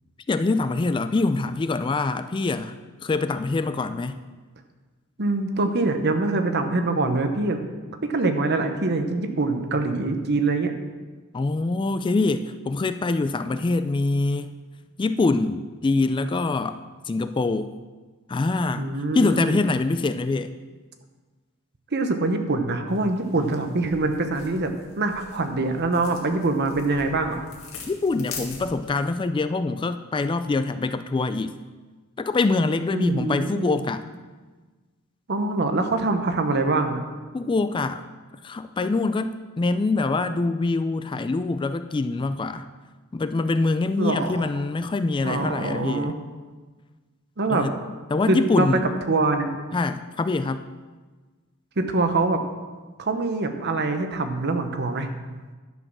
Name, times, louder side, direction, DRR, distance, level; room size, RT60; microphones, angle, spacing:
voice 1, 0.3-4.2 11.3-14.5 15.0-16.8 17.1-17.7 18.3-18.9 19.1-20.5 27.9-31.5 32.2-34.0 37.3-38.0 38.4-42.6 43.1-46.1 47.5-47.7 48.1-48.8 49.7-50.6, left 3 dB, 25° left, 11 dB, 0.3 m, -24 dB
voice 2, 5.2-7.6 8.0-10.7 18.8-19.7 21.9-27.4 32.9-33.9 35.3-37.0 44.0-44.5 45.2-46.1 47.4-47.7 48.3-48.7 49.1-49.5 51.8-52.4 53.0-55.1, right 3 dB, 55° right, 6 dB, 1.0 m, -24 dB
sound 1, 22.9-29.0, left 5 dB, 70° left, 2.1 m, -43 dB
10.5 x 6.5 x 6.1 m, 1.3 s
head